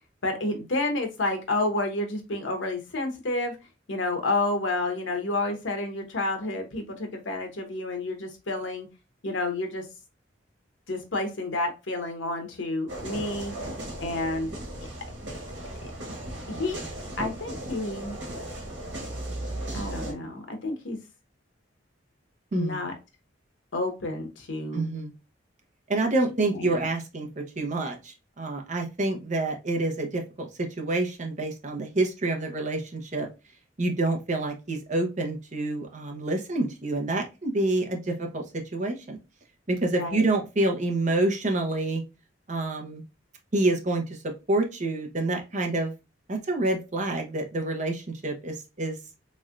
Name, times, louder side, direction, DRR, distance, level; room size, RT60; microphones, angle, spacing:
voice 1, 0.2-3.6 3.9-8.9 9.2-9.8 10.9-13.5 14.0-14.5 16.5-16.8 17.2-18.2 19.7-21.0 22.5-22.9 23.7-24.9 26.5-26.9 39.9-40.3, left 2 dB, 85° left, 5 dB, 0.9 m, -30 dB
sound 1, 12.9-20.1, right 1 dB, 70° right, 1.4 m, -36 dB
voice 2, 22.5-22.8 24.7-25.1 25.9-33.3 33.8-38.4 38.7-39.2 39.7-42.0 42.5-43.0 43.5-44.2 44.5-45.9 46.3-49.0, right 2 dB, 40° right, 2 dB, 0.8 m, -27 dB
3.5 x 3.2 x 2.5 m, 0.27 s
head